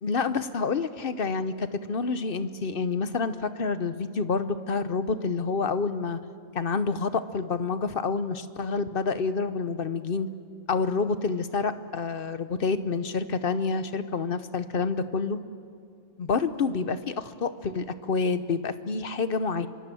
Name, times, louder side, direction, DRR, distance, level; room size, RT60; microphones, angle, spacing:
voice 1, 0.0-6.2 6.5-10.3 10.7-15.4 16.2-19.7, left 4 dB, 45° left, 13 dB, 0.9 m, -28 dB
25.0 x 24.0 x 7.7 m, 2.2 s
omnidirectional pair, 1.5 m